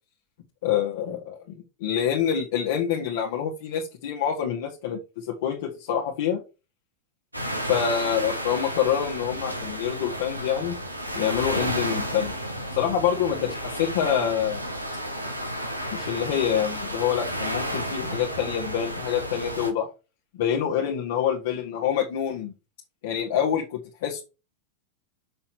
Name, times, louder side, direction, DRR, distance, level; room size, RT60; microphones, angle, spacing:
voice 1, 0.6-1.4 1.8-6.4 7.7-10.8 11.2-12.3 12.7-14.6 15.9-19.9 20.3-22.5 23.0-24.2, left 9 dB, 55° left, 1.7 m, -26 dB
sound 1, 7.3-19.7, equal, 85° right, 1.9 m, -32 dB
6.8 x 5.8 x 6.2 m
figure-of-eight pair, 90°, 0 cm